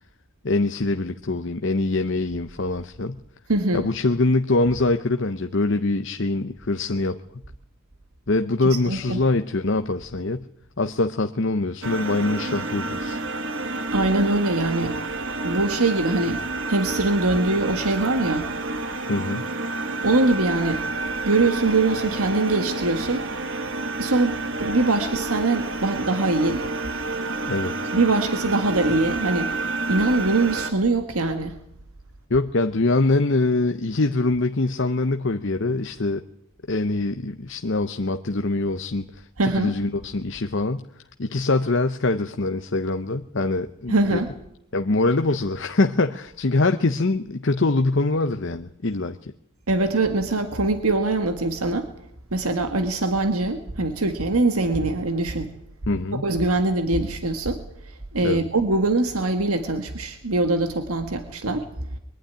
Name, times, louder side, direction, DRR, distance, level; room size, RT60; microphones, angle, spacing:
voice 1, 0.4-3.2 3.7-7.2 8.3-10.5 10.8-13.2 19.1-19.4 27.5-27.7 32.3-36.2 36.7-40.9 41.2-44.2 44.7-49.3 55.9-56.2 58.2-58.5, left 2 dB, 55° left, 7 dB, 0.8 m, -23 dB
voice 2, 3.5-3.8 8.7-9.2 13.9-15.0 15.4-18.5 20.0-20.8 21.2-23.3 24.0-26.7 27.9-29.5 29.9-31.6 39.4-39.8 43.9-44.3 49.7-51.9 52.3-55.5 56.1-61.7, right 2 dB, 85° right, 7 dB, 1.6 m, -23 dB
sound 1, 11.8-30.7, right 2 dB, 60° right, 1.5 m, -29 dB
23.0 x 12.0 x 9.9 m, 0.77 s
head